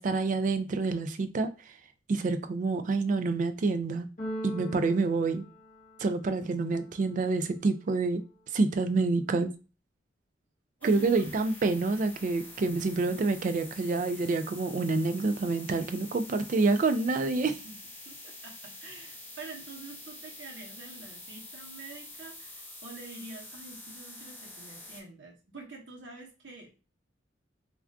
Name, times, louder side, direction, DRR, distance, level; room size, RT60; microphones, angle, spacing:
voice 1, 0.0-1.5 2.1-4.1 4.4-5.4 6.0-8.2 8.5-9.5 10.8-17.6, right 3 dB, 45° right, 9 dB, 0.3 m, -27 dB
Keyboard (musical), 4.2-6.3, right 1 dB, 45° left, 0.7 m, -40 dB
sound 1, 10.8-25.0, left 1 dB, 10° left, 0.7 m, -47 dB
voice 2, 10.8-11.3 17.5-17.8 18.1-26.8, right 3 dB, 85° right, 0 dB, 0.9 m, -47 dB
2.4 x 2.3 x 3.4 m, 0.31 s
head